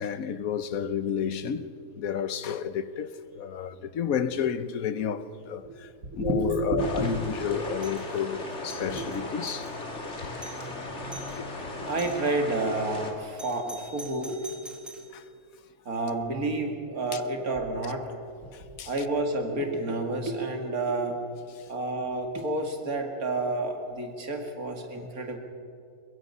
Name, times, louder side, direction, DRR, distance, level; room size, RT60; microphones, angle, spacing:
voice 1, 0.0-1.7 1.9-5.9 6.1-9.7 11.4-11.5 15.1-15.2 18.8-18.9, left 8 dB, 75° left, 1.3 m, -31 dB
voice 2, 6.1-7.4 8.8-9.0 10.2-10.6 11.9-14.4 15.9-18.1 18.9-21.2 21.7-25.4, right 2 dB, 85° right, 2.6 m, -30 dB
sound 1, 6.8-13.1, left 2 dB, 50° left, 2.6 m, -37 dB
Doorbell, 7.8-8.1 8.5-9.7 10.1-10.2 10.4-10.7 11.1-11.4 12.0-12.4 13.4-15.1, right 1 dB, ahead, 1.8 m, -45 dB
22.0 x 22.0 x 5.5 m
omnidirectional pair, 1.5 m